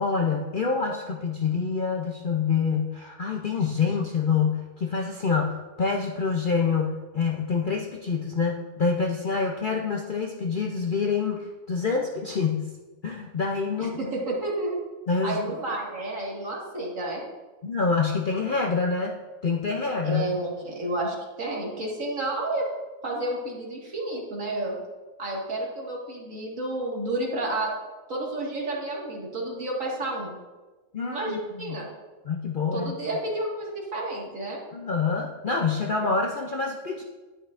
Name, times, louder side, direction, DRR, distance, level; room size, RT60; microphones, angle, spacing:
voice 1, 0.0-12.8 13.0-14.0 15.1-15.4 17.6-19.1 19.4-20.3 30.9-31.8 32.2-33.0 34.7-37.0, left 5 dB, 50° left, 1 dB, 0.6 m, -26 dB
voice 2, 13.8-14.8 15.2-17.2 20.0-22.7 23.0-24.8 25.2-27.7 28.1-30.3 31.1-31.9 32.7-34.6, right 2 dB, 60° right, -3 dB, 2.3 m, -30 dB
10.0 x 10.0 x 2.5 m, 1.2 s
omnidirectional pair, 1.5 m